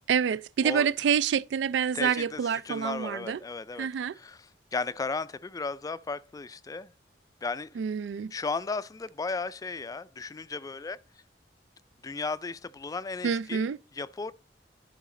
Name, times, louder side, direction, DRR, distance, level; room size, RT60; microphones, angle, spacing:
voice 1, 0.1-3.4 3.8-4.1 7.8-8.3 13.2-13.8, right 7 dB, 80° right, 0.3 m, -27 dB
voice 2, 1.9-3.9 4.2-4.4 4.7-6.9 7.4-7.7 8.3-11.0 12.0-13.7 14.0-14.3, left 4 dB, 20° left, 0.3 m, -35 dB
11.5 x 4.1 x 3.7 m
head